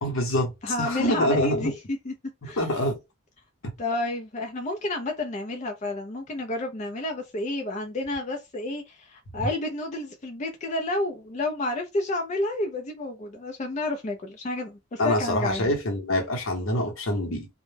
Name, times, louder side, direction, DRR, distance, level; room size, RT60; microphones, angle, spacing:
voice 1, 0.0-1.7 2.4-3.0 3.6-3.7 15.0-17.5, left 1 dB, 70° left, 0.8 m, -26 dB
voice 2, 0.6-2.1 2.4-2.6 3.8-15.7, left 2 dB, 35° left, 0.4 m, -30 dB
2.1 x 2.1 x 3.2 m
head